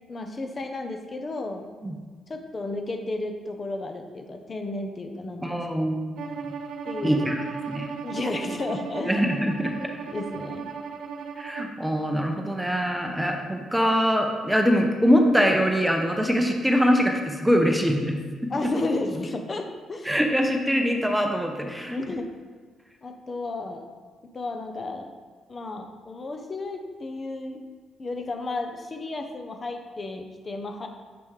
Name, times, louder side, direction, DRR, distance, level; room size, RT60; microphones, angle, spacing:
voice 1, 0.1-1.7 2.3-5.6 6.9-7.3 8.0-9.2 9.8-10.7 18.5-20.1 21.9-22.3 23.0-23.8 24.3-25.1 25.5-27.6 28.0-30.9, left 2 dB, 35° left, 5 dB, 0.7 m, -33 dB
voice 2, 5.4-6.4 7.0-7.9 9.1-9.7 11.4-18.5 20.1-22.0, equal, 5° right, 3 dB, 0.8 m, -23 dB
Bowed string instrument, 6.2-11.8, right 5 dB, 70° right, 0.5 m, -36 dB
7.7 x 5.4 x 3.2 m, 1.5 s
cardioid pair, 90°, 0 cm